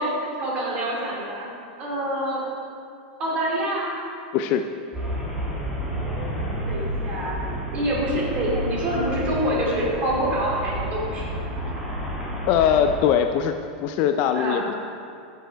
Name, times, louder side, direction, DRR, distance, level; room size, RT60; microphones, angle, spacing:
voice 1, 0.0-1.5 1.8-2.4 3.2-3.9 6.7-7.4 7.7-11.3 14.3-14.6, right 1 dB, 25° right, -4 dB, 2.4 m, -26 dB
voice 2, 4.3-4.7 12.5-13.6 13.8-14.7, left 8 dB, 35° left, 7 dB, 0.3 m, -21 dB
Traffic noise roadway noise, 4.9-13.0, equal, 5° right, 1.6 m, -30 dB
11.5 x 6.8 x 4.5 m, 2.4 s
supercardioid pair, 175°, 5 cm